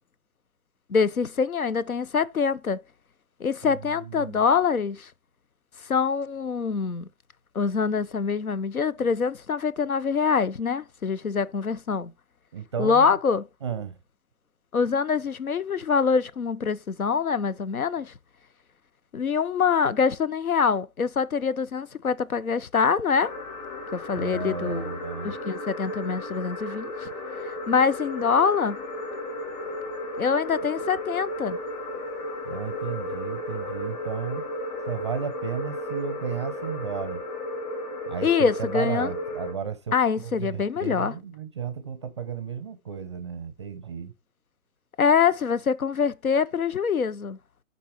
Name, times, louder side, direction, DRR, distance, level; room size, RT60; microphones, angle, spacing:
voice 1, 0.9-2.8 3.4-5.1 5.8-7.1 7.5-12.1 12.8-13.4 14.7-18.1 19.1-23.3 23.9-24.9 25.2-27.1 27.4-28.8 30.2-31.6 38.2-39.1 39.9-41.1 45.0-47.4, left 6 dB, 80° left, 0.8 m, -24 dB
voice 2, 3.6-4.4 12.5-13.2 13.6-14.0 24.1-25.4 32.4-34.5 34.9-37.2 38.1-44.1, right 7 dB, 20° right, 0.5 m, -34 dB
sound 1, 23.1-39.5, left 1 dB, 30° left, 3.2 m, -34 dB
11.5 x 4.1 x 3.0 m
figure-of-eight pair, 135°, 43 cm